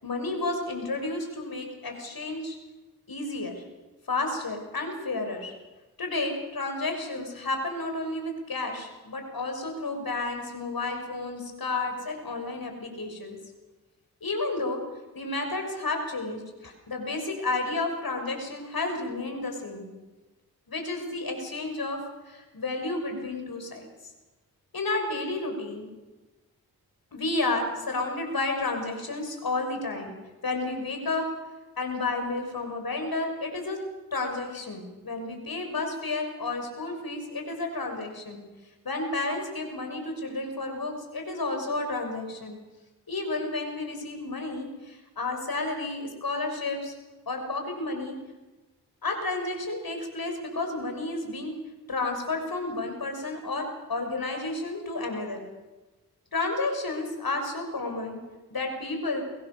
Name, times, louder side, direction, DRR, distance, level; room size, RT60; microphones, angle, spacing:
voice 1, 0.0-2.6 3.1-3.6 4.1-5.6 6.0-13.4 14.2-14.8 15.1-19.9 20.7-23.9 24.7-25.9 27.1-30.1 30.4-31.3 31.8-33.8 34.1-38.4 38.8-42.6 43.1-46.9 47.3-48.2 49.0-51.5 51.9-55.4 56.3-58.2 58.5-59.2, left 2 dB, 65° left, 4 dB, 6.3 m, -31 dB
23.5 x 22.0 x 7.0 m, 1.2 s
cardioid pair, 40°, 38 cm